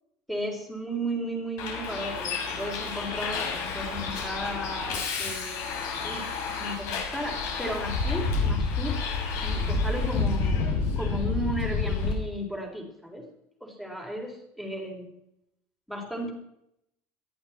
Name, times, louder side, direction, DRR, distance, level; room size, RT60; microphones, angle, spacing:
voice 1, 0.3-9.0 9.4-10.6 11.0-13.2 13.6-15.1 15.9-16.3, right 1 dB, ahead, 1 dB, 4.0 m, -35 dB
Bus, 1.6-12.1, left 4 dB, 55° left, 5.9 m, -29 dB
19.0 x 14.5 x 4.4 m, 0.78 s
cardioid pair, 170°, 7 cm